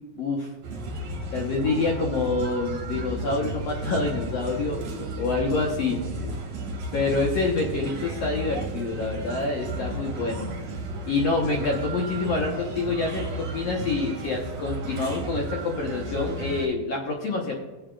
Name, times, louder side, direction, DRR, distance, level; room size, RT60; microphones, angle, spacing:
voice 1, 0.2-0.5 1.3-6.3 6.9-10.5 11.0-17.5, left 3 dB, 70° left, -1 dB, 1.5 m, -27 dB
sound 1, 0.6-16.7, right 2 dB, 60° right, 2.0 m, -34 dB
21.0 x 7.5 x 2.4 m, 1.2 s
omnidirectional pair, 4.3 m